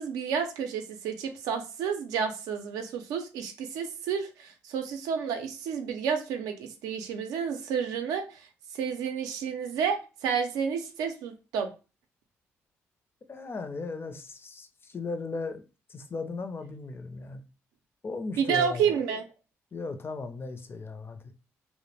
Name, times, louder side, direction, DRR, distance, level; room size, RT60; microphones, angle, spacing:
voice 1, 0.0-8.5 8.7-11.7 18.4-19.2, right 7 dB, 80° right, 0.4 m, -30 dB
voice 2, 13.3-15.6 15.9-17.4 18.0-18.9 19.7-21.2, left 3 dB, 40° left, 0.5 m, -36 dB
2.2 x 2.0 x 3.2 m
hypercardioid pair, 50°, 6 cm